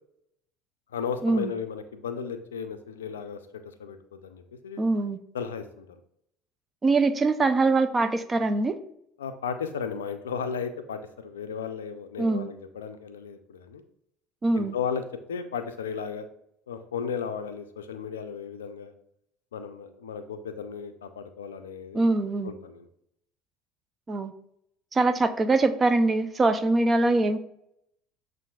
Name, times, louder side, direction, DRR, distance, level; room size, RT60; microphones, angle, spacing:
voice 1, 0.9-3.4 3.8-4.8 5.3-5.9 9.2-13.8 14.5-15.0 15.3-16.3 16.7-18.9 19.5-22.0 22.4-22.8, left 6 dB, 90° left, 9 dB, 0.4 m, -35 dB
voice 2, 4.8-5.2 6.8-8.8 12.2-12.5 14.4-14.8 21.9-22.5 24.1-24.3 24.9-27.4, right 3 dB, 25° right, 11 dB, 0.4 m, -23 dB
7.0 x 2.5 x 2.3 m, 0.75 s
hypercardioid pair, 75°, 0 cm